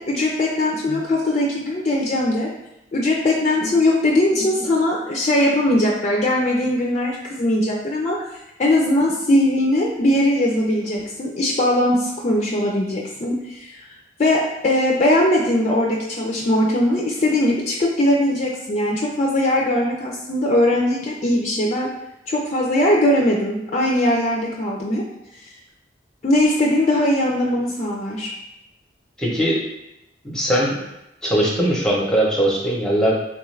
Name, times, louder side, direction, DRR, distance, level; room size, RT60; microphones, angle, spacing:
voice 1, 0.0-2.5 2.9-8.2 8.6-13.8 14.2-21.9 22.3-25.0 26.2-28.3, left 1 dB, 40° left, -2 dB, 0.4 m, -20 dB
voice 2, 29.2-29.6 30.2-30.8 31.2-33.1, right 1 dB, 5° left, -4 dB, 0.7 m, -20 dB
3.5 x 2.4 x 3.1 m, 0.88 s
head